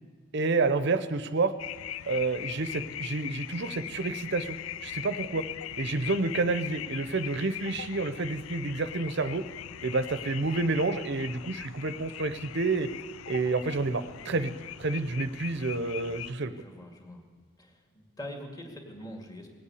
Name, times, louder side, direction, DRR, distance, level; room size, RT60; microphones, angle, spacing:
voice 1, 0.3-1.5 2.0-5.4 5.8-9.4 9.8-12.9 13.3-14.5 14.8-16.5, right 3 dB, 60° right, 11 dB, 0.7 m, -29 dB
sound 1, 1.6-16.3, left 12 dB, 85° left, 0.4 m, -40 dB
voice 2, 16.5-17.2 17.6-19.5, left 1 dB, 20° left, 1 dB, 2.1 m, -43 dB
18.0 x 8.5 x 8.4 m, 1.5 s
head